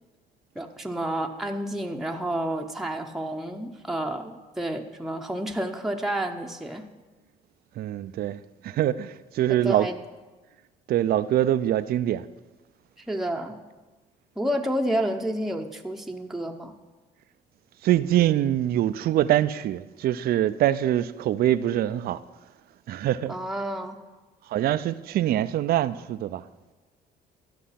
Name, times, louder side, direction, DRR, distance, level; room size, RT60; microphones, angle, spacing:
voice 1, 0.6-6.9 9.6-10.0 13.0-13.6 14.4-16.7 23.3-24.0, right 1 dB, ahead, 0.7 m, -30 dB
voice 2, 7.8-9.9 10.9-12.2 17.8-22.2 22.9-23.3 24.5-26.4, right 12 dB, 60° right, 0.4 m, -24 dB
12.5 x 5.4 x 5.8 m
cardioid pair, 85°, 18 cm